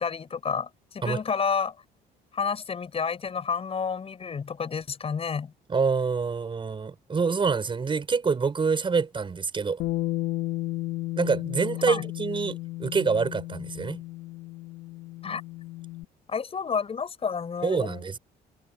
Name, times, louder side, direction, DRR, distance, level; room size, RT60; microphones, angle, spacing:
voice 1, 0.0-1.8 2.3-5.5 11.9-12.0 15.2-15.4 16.3-18.0, left 6 dB, 35° left, 7.0 m, -30 dB
voice 2, 5.7-9.8 11.2-14.0 17.6-18.2, right 5 dB, 30° right, 6.8 m, -26 dB
Bass guitar, 9.8-16.0, left 17 dB, 75° left, 2.4 m, -33 dB
cardioid pair, 110°, 17 cm